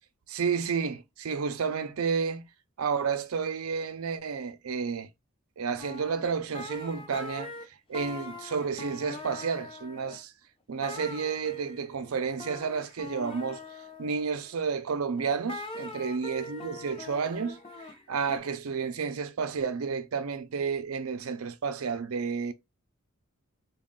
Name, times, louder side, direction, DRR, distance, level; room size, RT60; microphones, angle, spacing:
voice 1, 0.3-2.4 2.8-5.1 5.6-10.3 10.7-13.6 14.0-22.5, right 5 dB, 80° right, 0.5 m, -31 dB
sound 1, 5.8-7.7 7.9-10.2 10.8-14.7 15.1-18.4, left 3 dB, 25° left, 0.7 m, -42 dB
4.1 x 2.3 x 3.6 m
head